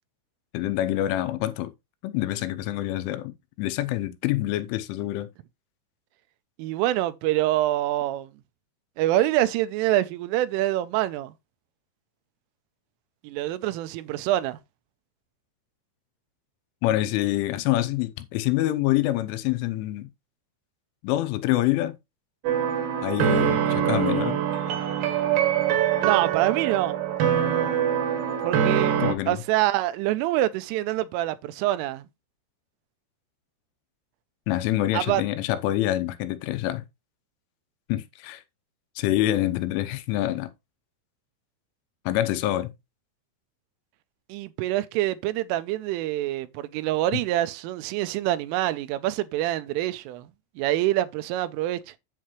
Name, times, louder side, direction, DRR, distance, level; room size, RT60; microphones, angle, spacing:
voice 1, 0.5-1.7 2.0-5.3 16.8-20.1 21.0-22.0 23.0-24.4 29.0-29.4 34.5-36.8 37.9-38.4 39.0-40.5 42.1-42.7, left 14 dB, 90° left, 3.2 m, -26 dB
voice 2, 6.6-8.3 9.0-11.3 13.2-14.6 26.0-27.0 28.4-29.0 29.3-32.1 34.9-35.2 44.3-50.3 50.6-52.0, right 14 dB, 90° right, 3.2 m, -25 dB
sound 1, 22.4-29.1, right 9 dB, 70° right, 2.4 m, -24 dB
8.4 x 7.5 x 3.1 m
omnidirectional pair, 5.6 m